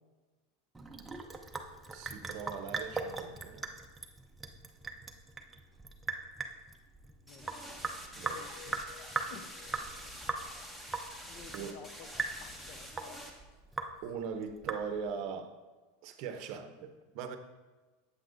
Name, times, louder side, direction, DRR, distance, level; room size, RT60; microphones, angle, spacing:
Sink (filling or washing) / Drip, 0.7-15.2, right 4 dB, 10° right, 0.6 m, -40 dB
voice 1, 1.9-3.7 8.2-8.8 11.5-11.8 14.0-15.5 16.0-17.4, right 6 dB, 55° right, 8 dB, 0.7 m, -40 dB
voice 2, 7.3-7.9 9.3-10.3 11.2-12.1 12.4-13.3, left 6 dB, 50° left, 8 dB, 0.7 m, -53 dB
sound 1, 7.3-13.3, equal, 10° left, 1.1 m, -47 dB
Piano, 8.4-12.1, left 14 dB, 80° left, 0.4 m, -57 dB
8.2 x 7.8 x 2.6 m, 1.2 s
supercardioid pair, 130°, 0 cm